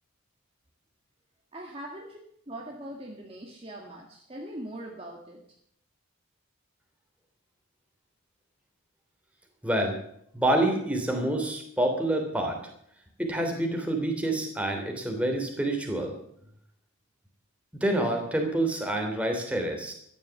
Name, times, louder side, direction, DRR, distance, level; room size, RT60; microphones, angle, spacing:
voice 1, 1.5-2.2 2.5-5.4, right 1 dB, 25° right, 0 dB, 1.8 m, -41 dB
voice 2, 9.6-10.0 10.3-12.6 13.2-16.1 17.8-19.9, right 1 dB, 5° right, 2 dB, 3.1 m, -27 dB
14.5 x 11.0 x 7.0 m, 0.70 s
head